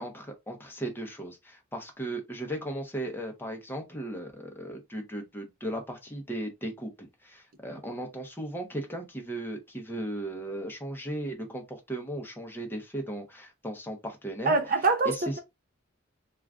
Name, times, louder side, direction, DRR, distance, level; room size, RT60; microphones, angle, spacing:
voice 1, 0.0-14.6 15.0-15.3, right 1 dB, 10° left, 0.8 m, -36 dB
voice 2, 14.5-15.4, right 3 dB, 45° right, 0.6 m, -25 dB
2.5 x 2.3 x 3.3 m
head